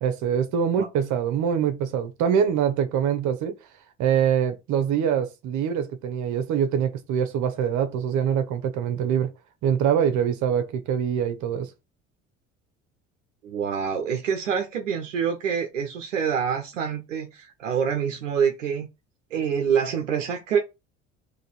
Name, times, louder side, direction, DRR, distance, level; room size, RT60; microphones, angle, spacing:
voice 1, 0.0-3.5 4.0-9.3 9.6-11.7, right 8 dB, 50° right, 1.1 m, -24 dB
voice 2, 13.4-18.9 19.3-20.6, right 7 dB, 80° right, 0.8 m, -26 dB
4.0 x 3.0 x 4.4 m
figure-of-eight pair, 60°, 37 cm